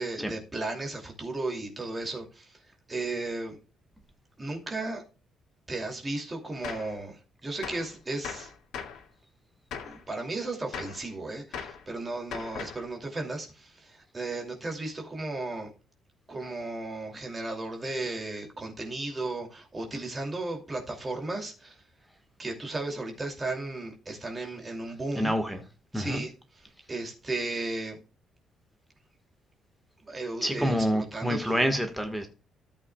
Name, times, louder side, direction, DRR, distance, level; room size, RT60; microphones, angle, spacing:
voice 1, 0.0-3.6 4.4-5.0 5.7-8.5 9.8-15.7 16.3-21.8 22.4-25.3 25.9-26.3 26.9-28.0 30.0-31.6, right 2 dB, 20° right, 2.6 m, -35 dB
Gunshot gunfire, 6.6-6.9 7.6-7.9 8.2-9.0 9.7-10.0 10.7-11.0 11.5-11.8 12.3-12.9, left 7 dB, 80° left, 2.2 m, -38 dB
voice 2, 25.1-25.6 25.9-26.2 30.4-32.3, equal, ahead, 1.5 m, -27 dB
13.5 x 8.4 x 2.3 m
cardioid pair, 160°, 0 cm